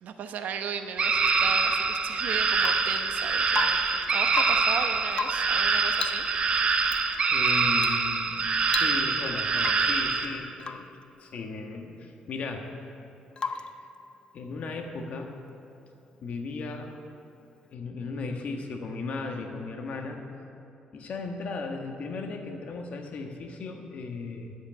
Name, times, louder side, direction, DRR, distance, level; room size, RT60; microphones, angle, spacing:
voice 1, 0.0-3.8 4.1-6.6, right 7 dB, 75° right, 7 dB, 0.8 m, -36 dB
sound 1, 1.0-10.3, right 4 dB, 40° right, 0.8 m, -25 dB
Rain / Water tap faucet / Drip, 2.6-3.0 3.5-4.0 4.3-4.7 5.1-5.6 5.9-6.3 6.8-7.0 7.8-8.1 8.3-8.4 8.7-9.2 9.6-10.0 10.6-10.9 13.4-13.8 15.7-15.8, left 5 dB, 35° left, 0.5 m, -35 dB
voice 2, 7.3-8.4 8.7-10.9 11.2-12.7 13.5-13.7 14.3-15.3 16.2-16.9 17.7-20.2 20.9-24.5, left 3 dB, 55° left, 3 dB, 1.4 m, -36 dB
10.5 x 7.8 x 8.7 m, 2.7 s
cardioid pair, 125°, 3 cm